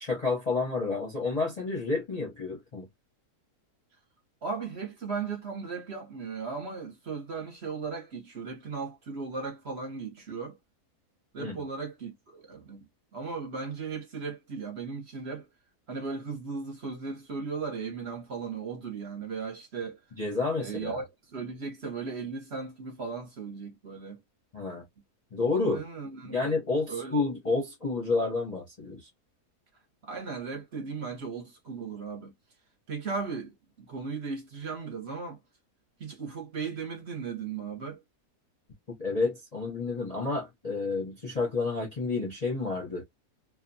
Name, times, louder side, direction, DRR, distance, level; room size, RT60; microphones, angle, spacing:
voice 1, 0.0-2.9 11.4-11.6 20.2-21.0 24.5-24.8 25.3-25.8 26.2-29.1 39.0-43.0, left 3 dB, 35° left, 0.6 m, -30 dB
voice 2, 4.4-10.6 11.3-12.9 13.1-15.5 15.9-20.0 20.6-24.2 25.7-26.6 26.9-27.2 30.0-32.3 32.9-35.4 36.0-38.0, right 5 dB, 50° right, 1.0 m, -37 dB
2.7 x 2.2 x 2.6 m
omnidirectional pair, 1.6 m